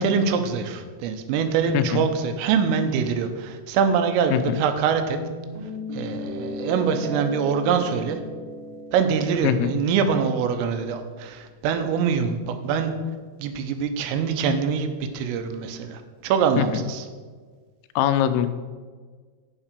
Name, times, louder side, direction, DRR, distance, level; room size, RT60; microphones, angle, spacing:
voice 1, 0.0-5.2 5.9-8.2 8.9-12.9 13.4-17.1, right 6 dB, 85° right, 7 dB, 3.5 m, -24 dB
sound 1, 5.2-10.9, left 1 dB, 30° right, 2.3 m, -36 dB
voice 2, 18.0-18.5, left 11 dB, 85° left, 10 dB, 3.1 m, -22 dB
8.8 x 7.4 x 6.7 m, 1.5 s
omnidirectional pair, 5.8 m